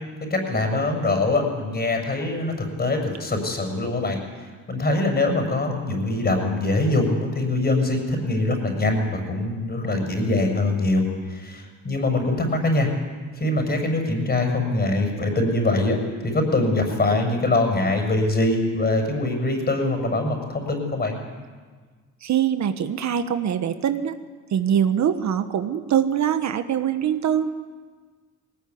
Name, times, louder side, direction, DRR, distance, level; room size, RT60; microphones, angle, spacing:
voice 1, 0.2-12.9 13.4-16.0 16.2-21.2, left 2 dB, 35° left, 4 dB, 6.7 m, -23 dB
voice 2, 22.2-24.1 24.5-27.5, right 9 dB, 65° right, 9 dB, 1.4 m, -23 dB
20.0 x 19.5 x 9.6 m, 1.5 s
cardioid pair, 90°, 30 cm